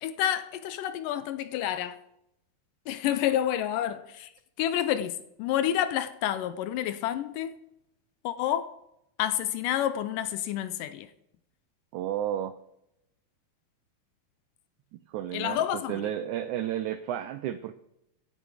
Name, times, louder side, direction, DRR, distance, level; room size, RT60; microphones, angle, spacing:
voice 1, 0.0-2.0 2.9-4.3 4.6-7.5 8.2-8.7 9.2-11.1 15.3-16.1, left 11 dB, 80° left, 2.1 m, -29 dB
voice 2, 11.9-12.5 14.9-17.8, right 11 dB, 90° right, 1.7 m, -32 dB
17.0 x 9.0 x 4.9 m
omnidirectional pair, 4.2 m